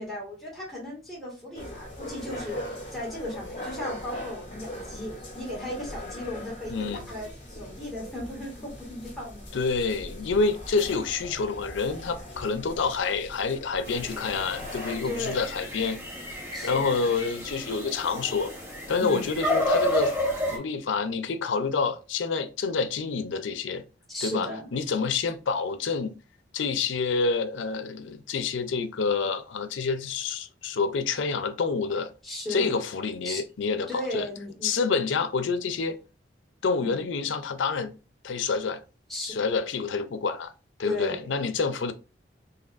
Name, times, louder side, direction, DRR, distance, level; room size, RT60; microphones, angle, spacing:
voice 1, 0.0-2.6 2.9-9.5 15.0-15.5 16.5-17.0 19.0-19.3 20.5-20.6 24.1-24.7 32.2-32.8 33.2-33.4 33.9-34.7 39.1-39.5 40.8-41.5, left 1 dB, ahead, 1.9 m, -36 dB
sound 1, 1.5-15.0, left 1 dB, 30° left, 1.6 m, -40 dB
voice 2, 6.7-7.1 9.5-16.0 16.6-18.5 18.9-20.1 20.5-23.8 24.2-26.2 26.5-32.1 32.5-34.3 34.6-36.0 36.6-37.9 38.2-38.8 39.2-40.5 40.8-41.9, left 4 dB, 90° left, 0.5 m, -28 dB
sound 2, 13.9-20.6, left 1 dB, 15° right, 1.2 m, -31 dB
4.1 x 3.3 x 2.5 m
head